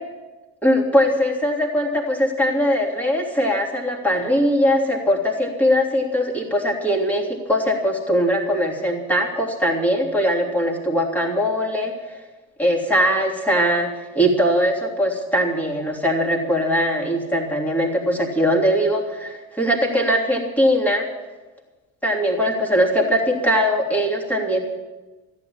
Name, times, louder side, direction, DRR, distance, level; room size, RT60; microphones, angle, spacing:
voice 1, 0.6-11.9 12.6-13.9 14.1-21.1 22.0-24.6, equal, 5° left, -1 dB, 3.1 m, -20 dB
14.5 x 9.2 x 8.8 m, 1.2 s
figure-of-eight pair, 60°, 41 cm